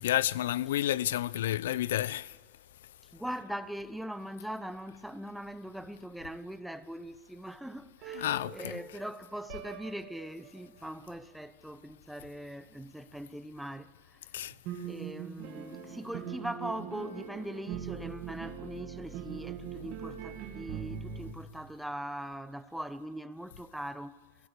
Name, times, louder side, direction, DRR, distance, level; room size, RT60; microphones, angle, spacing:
voice 1, 0.0-2.3 8.1-8.8 14.3-14.5, left 13 dB, 85° left, 0.6 m, -30 dB
voice 2, 3.1-14.2 14.8-24.2, right 1 dB, ahead, 0.9 m, -41 dB
sound 1, 8.0-10.8 14.4-21.3, right 8 dB, 50° right, 2.3 m, -42 dB
29.0 x 17.0 x 6.7 m
supercardioid pair, 145°, 0 cm